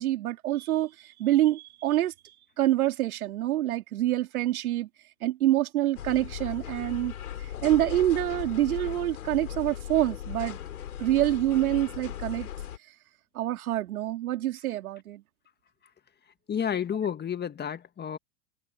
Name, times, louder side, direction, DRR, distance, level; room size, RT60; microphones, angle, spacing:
voice 1, 0.0-2.1 2.6-4.9 5.2-7.1 7.4-10.6 11.0-12.5 13.3-15.2, right 14 dB, 75° right, 4.4 m, -26 dB
sound 1, 5.9-12.8, left 10 dB, 80° left, 4.3 m, -38 dB
voice 2, 16.5-18.2, left 8 dB, 25° left, 1.8 m, -30 dB
hypercardioid pair, 100°, 43 cm